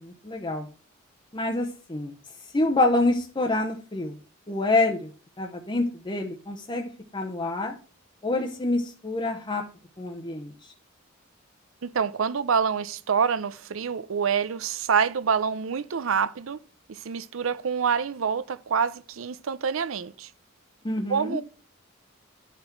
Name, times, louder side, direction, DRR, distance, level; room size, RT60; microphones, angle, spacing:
voice 1, 0.0-0.7 1.3-2.1 2.5-4.1 4.5-5.1 5.4-7.7 8.2-9.6 10.0-10.7 20.8-21.4, left 2 dB, 25° left, 0.8 m, -27 dB
voice 2, 11.8-16.6 16.9-20.3 21.1-21.4, right 6 dB, 70° right, 0.5 m, -26 dB
10.5 x 5.9 x 4.5 m
head